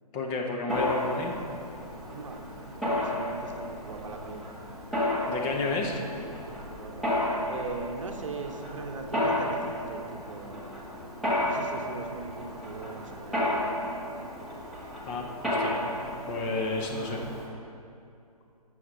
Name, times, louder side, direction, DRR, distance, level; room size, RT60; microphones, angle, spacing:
voice 1, 0.1-1.3 5.3-5.9 15.0-15.8 16.3-17.2, left 3 dB, 20° left, 0 dB, 0.9 m, -31 dB
Mechanisms, 0.7-17.5, left 1 dB, ahead, 1.4 m, -32 dB
voice 2, 2.1-2.4 2.8-4.4 5.6-7.1 7.5-10.7 11.4-13.6 15.3-15.8 16.8-17.3, right 4 dB, 55° right, 4 dB, 1.0 m, -41 dB
12.5 x 6.6 x 4.4 m, 2.5 s
figure-of-eight pair, 135°, 20 cm